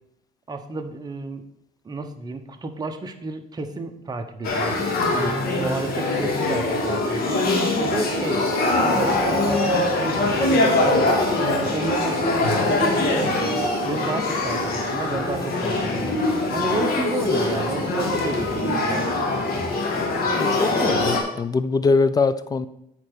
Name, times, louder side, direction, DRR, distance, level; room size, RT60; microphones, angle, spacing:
voice 1, 0.5-1.4 1.8-4.8 5.1-7.5 7.8-11.1 11.5-13.5 13.8-16.2 16.5-19.1, right 3 dB, 25° right, 5 dB, 1.1 m, -31 dB
Male speech man speaking / Child speech kid speaking / Conversation, 4.4-21.2, left 2 dB, 65° left, 2.1 m, -22 dB
voice 2, 20.4-22.7, left 4 dB, 20° left, 14 dB, 0.5 m, -22 dB
8.6 x 4.4 x 6.9 m, 0.78 s
cardioid pair, 110°, 17 cm